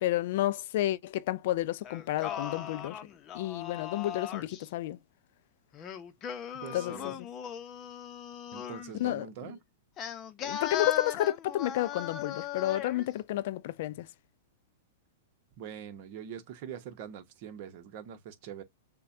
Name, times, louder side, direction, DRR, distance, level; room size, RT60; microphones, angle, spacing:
voice 1, 0.0-3.0 3.3-5.0 6.7-7.1 9.0-9.3 10.4-14.1, left 14 dB, 60° left, 0.3 m, -31 dB
Singing, 1.8-4.7 5.7-8.9 10.0-13.1, left 9 dB, 30° left, 0.7 m, -38 dB
voice 2, 6.5-7.3 8.5-9.6 15.6-18.6, right 8 dB, 50° right, 1.0 m, -43 dB
6.6 x 2.3 x 2.6 m
hypercardioid pair, 135°, 0 cm